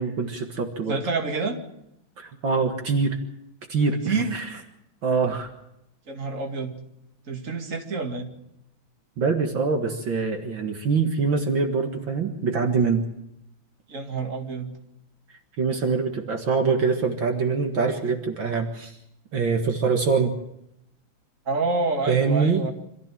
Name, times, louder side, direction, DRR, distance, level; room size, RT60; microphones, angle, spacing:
voice 1, 0.0-1.0 2.2-3.2 3.7-4.4 5.0-5.5 9.2-13.0 15.6-19.0 19.3-20.3 22.1-22.6, right 5 dB, 65° right, 4 dB, 2.5 m, -24 dB
voice 2, 0.9-1.6 4.1-4.3 6.1-6.7 7.3-8.3 13.9-14.7 21.5-22.7, right 3 dB, 40° right, 3 dB, 2.6 m, -27 dB
26.0 x 15.0 x 7.5 m, 0.82 s
omnidirectional pair, 2.3 m